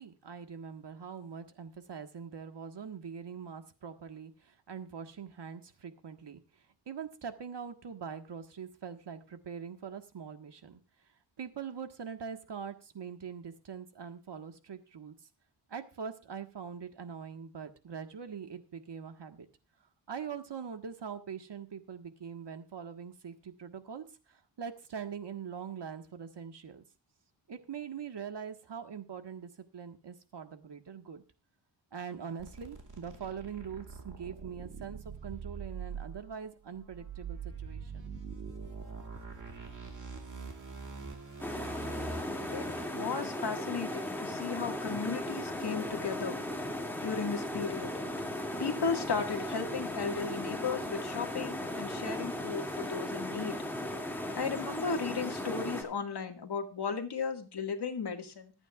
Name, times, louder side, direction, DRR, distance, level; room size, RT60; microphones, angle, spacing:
voice 1, 0.0-6.4 6.9-10.8 11.4-15.1 15.7-19.5 20.1-26.8 27.5-31.2 31.9-38.1, right 7 dB, 60° right, 6 dB, 1.6 m, -43 dB
sound 1, 32.4-43.2, right 5 dB, 40° right, 2.4 m, -44 dB
sound 2, 41.4-55.8, left 1 dB, 5° left, 2.4 m, -37 dB
voice 2, 42.9-46.4 47.0-47.9 48.6-53.6 54.3-58.5, left 5 dB, 55° left, 3 dB, 2.0 m, -35 dB
25.0 x 8.9 x 2.4 m, 0.31 s
wide cardioid pair, 110°, 47 cm